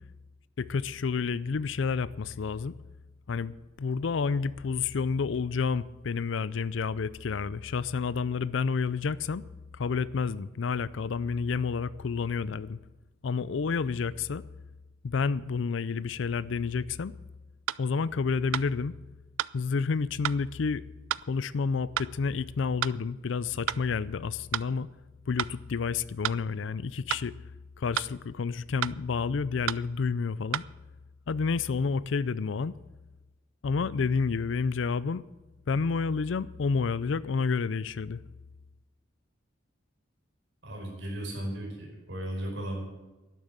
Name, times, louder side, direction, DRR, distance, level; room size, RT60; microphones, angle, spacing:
voice 1, 0.6-2.7 3.3-9.4 9.7-12.8 13.2-14.4 15.0-17.1 17.8-18.9 19.5-20.9 21.3-24.9 25.3-27.4 27.8-30.6 31.3-32.7 33.6-35.2 35.7-38.2, left 5 dB, 75° left, 0.5 m, -29 dB
sound 1, 17.7-17.8 18.5-18.7 19.4-19.6 20.2-20.4 21.1-21.3 22.0-22.1 22.8-23.0 23.7-23.8 24.5-24.7 25.4-25.5 26.2-26.4 27.1-27.3 28.0-28.1 28.8-29.0 29.7-29.8 30.5-30.7, right 11 dB, 85° right, 0.3 m, -31 dB
voice 2, 40.6-42.8, right 1 dB, 70° right, 5.4 m, -35 dB
12.0 x 11.0 x 7.4 m
head